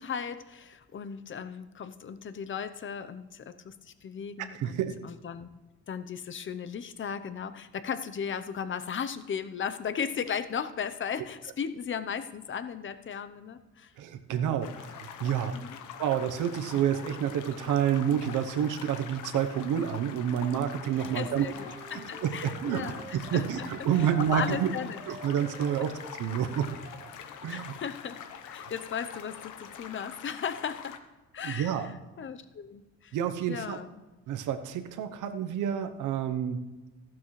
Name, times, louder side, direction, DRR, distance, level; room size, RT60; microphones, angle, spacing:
voice 1, 0.0-5.5 5.9-13.9 14.3-14.5 15.5-15.8 21.0-25.0 27.5-31.0 31.3-33.2 33.5-33.9, left 7 dB, 40° left, 11 dB, 0.8 m, -36 dB
voice 2, 4.5-4.9 14.0-15.6 16.0-21.5 21.9-24.7 25.1-25.9 26.2-26.7 27.4-27.7 31.4-31.9 33.1-33.8 34.3-36.7, right 9 dB, 80° right, 9 dB, 0.9 m, -29 dB
sound 1, 14.6-31.0, left 8 dB, 80° left, 1.0 m, -44 dB
sound 2, 21.4-27.2, right 4 dB, 30° right, 1.0 m, -48 dB
14.5 x 12.0 x 3.2 m, 1.2 s
cardioid pair, 90°, 30 cm